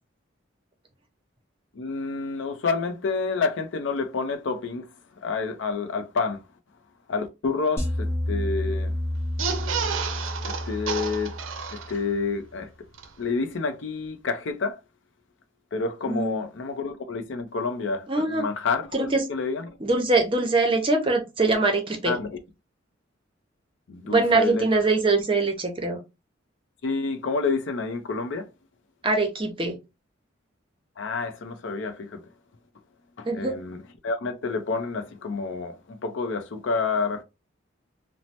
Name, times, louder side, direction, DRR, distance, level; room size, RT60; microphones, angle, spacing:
voice 1, 1.7-4.9 5.2-6.4 7.1-8.9 10.4-11.3 11.7-12.7 13.2-14.8 15.7-19.8 22.0-22.4 23.9-24.7 26.8-28.5 31.0-32.2 33.2-37.2, left 4 dB, 65° left, 0.5 m, -29 dB
sound 1, 7.8-12.1, left 1 dB, 15° left, 0.6 m, -30 dB
sound 2, 9.3-12.2 12.6-12.7 12.9-13.1, right 6 dB, 80° right, 0.5 m, -31 dB
voice 2, 18.1-18.4 18.9-19.2 19.8-22.2 24.0-26.0 29.0-29.8 33.2-33.6, right 3 dB, 25° right, 0.6 m, -23 dB
3.0 x 2.0 x 2.7 m
head